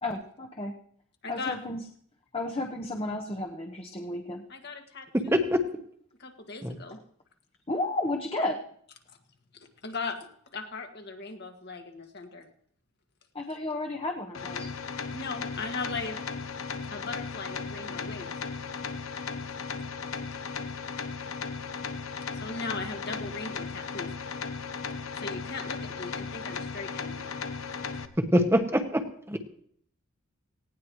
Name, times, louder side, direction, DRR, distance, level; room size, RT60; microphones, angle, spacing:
voice 1, 0.0-0.7 1.3-1.8 2.3-4.4 7.7-8.6 13.3-14.7, left 2 dB, 25° left, 2 dB, 1.1 m, -32 dB
voice 2, 1.2-1.6 4.5-5.4 6.2-7.0 9.1-9.2 9.5-10.2 10.5-12.5 15.1-16.2 16.9-18.3 22.3-24.1 25.1-27.4, left 3 dB, 50° left, 4 dB, 1.9 m, -38 dB
voice 3, 5.1-5.6 6.6-6.8 28.2-29.4, equal, 10° right, 6 dB, 1.1 m, -24 dB
sound 1, 14.3-28.1, left 5 dB, 75° left, 1.0 m, -36 dB
18.5 x 17.0 x 3.2 m, 0.63 s
head